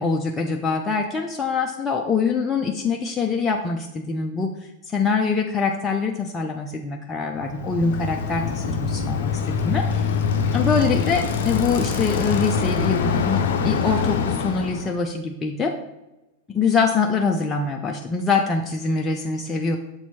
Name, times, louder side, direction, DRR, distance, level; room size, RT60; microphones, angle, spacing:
voice 1, 0.0-4.5 4.9-10.1 10.5-15.7 16.5-19.8, left 4 dB, 20° left, 1 dB, 0.6 m, -24 dB
Bicycle, 7.4-14.9, left 6 dB, 55° left, 0.7 m, -24 dB
7.1 x 4.4 x 4.2 m, 0.98 s
figure-of-eight pair, 90°, 0 cm